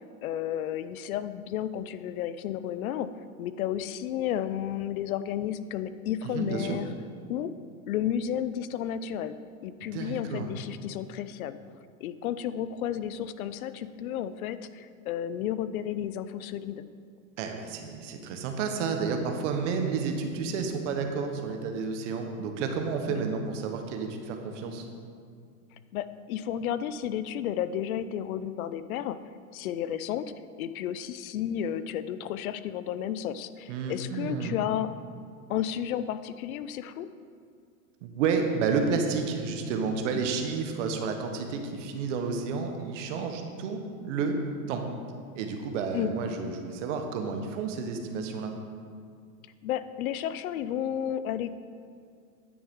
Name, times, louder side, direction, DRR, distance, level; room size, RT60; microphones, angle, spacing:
voice 1, 0.2-3.1 3.4-6.9 7.3-7.5 7.9-9.4 9.6-11.6 12.0-16.8 23.1-23.2 25.9-29.2 29.5-30.3 30.6-34.9 35.5-37.1 40.1-40.2 45.9-46.1 49.6-51.5, left 10 dB, 70° left, 13 dB, 0.6 m, -32 dB
voice 2, 6.3-6.8 9.8-10.5 17.4-24.8 33.7-34.6 38.0-44.4 44.7-44.8 45.3-48.5, right 5 dB, 55° right, 4 dB, 1.2 m, -31 dB
9.6 x 6.9 x 3.7 m, 2.2 s
supercardioid pair, 135°, 44 cm